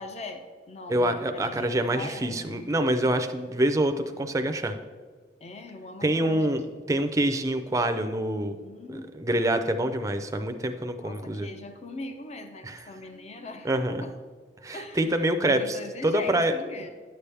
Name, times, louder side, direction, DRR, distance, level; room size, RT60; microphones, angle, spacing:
voice 1, 0.0-2.6 5.4-6.6 8.6-9.2 11.0-14.1 14.7-15.2 15.4-16.9, left 2 dB, 40° left, 7 dB, 0.6 m, -41 dB
voice 2, 0.9-4.8 6.0-6.6 6.9-8.6 8.9-11.5 12.6-12.8 13.6-14.0 14.6-16.5, right 1 dB, 20° right, 8 dB, 0.5 m, -26 dB
9.7 x 6.9 x 3.4 m, 1.5 s
head